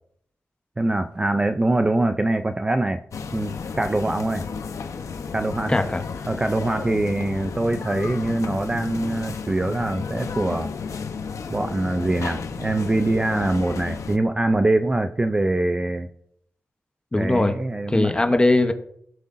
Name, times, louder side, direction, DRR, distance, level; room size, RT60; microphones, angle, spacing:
voice 1, 0.8-3.0 3.3-4.5 5.3-5.8 6.3-10.7 11.5-16.1 17.2-18.1, right 2 dB, 15° right, 8 dB, 0.3 m, -23 dB
sound 1, 3.1-14.2, left 5 dB, 85° left, 0.8 m, -33 dB
voice 2, 5.7-6.0 17.1-17.6 17.9-18.7, left 2 dB, 15° left, 7 dB, 0.8 m, -20 dB
16.0 x 7.6 x 2.5 m, 0.69 s
wide cardioid pair, 160°, 5 cm